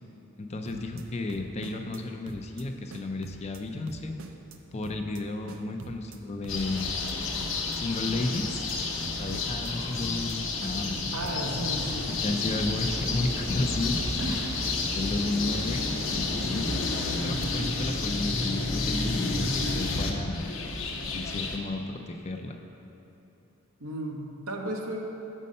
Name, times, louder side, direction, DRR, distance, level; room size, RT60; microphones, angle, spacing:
voice 1, 0.4-4.1 4.7-7.0 7.7-8.7 9.2-11.4 12.2-14.5 15.0-16.7 17.2-20.4 21.1-22.6, left 2 dB, 30° left, 4 dB, 0.4 m, -33 dB
sound 1, 0.7-1.0 1.3-2.0 2.3-2.6 2.9-3.6 3.9-4.6 4.8-5.2 5.5-6.2 6.4-7.1 7.4-7.8 8.0-8.7 9.0-9.7 10.0-10.4 10.6-11.3 11.6-11.9, right 4 dB, 60° right, 0.5 m, -45 dB
sound 2, 6.5-21.6, left 3 dB, 60° left, 0.8 m, -30 dB
voice 2, 11.1-12.2 14.2-14.8 23.8-25.0, right 1 dB, 75° right, 1 dB, 0.9 m, -35 dB
sound 3, 11.7-18.2, equal, 40° right, 1.1 m, -43 dB
7.4 x 5.5 x 5.3 m, 3.0 s
head